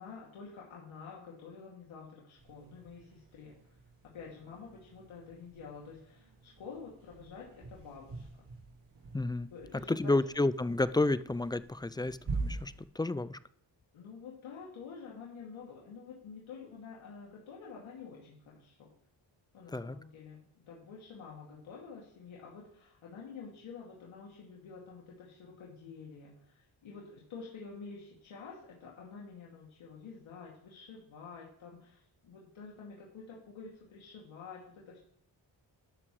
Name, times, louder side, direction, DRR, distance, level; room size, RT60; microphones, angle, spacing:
voice 1, 0.0-3.5 4.0-8.5 9.5-10.1 13.9-18.9 19.5-35.0, left 5 dB, 80° left, -4 dB, 2.5 m, -49 dB
sound 1, 2.4-12.8, right 3 dB, 60° right, 4.1 m, -45 dB
voice 2, 9.1-9.5 9.9-13.4 19.7-20.0, left 2 dB, 10° left, 15 dB, 0.3 m, -31 dB
12.0 x 7.5 x 3.2 m, 0.72 s
cardioid pair, 55°, 47 cm